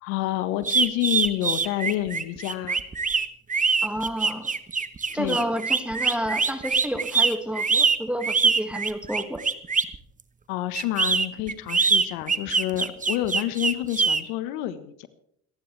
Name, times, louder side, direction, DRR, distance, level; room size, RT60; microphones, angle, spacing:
voice 1, 0.0-2.8 5.1-5.5 10.5-15.1, left 14 dB, 75° left, 12 dB, 1.5 m, -28 dB
sound 1, 0.6-10.0 10.7-14.2, right 5 dB, 20° right, 1.1 m, -23 dB
voice 2, 3.8-4.5 5.1-9.4, equal, 5° right, 7 dB, 2.1 m, -30 dB
28.5 x 11.0 x 3.4 m, 0.72 s
supercardioid pair, 85°, 44 cm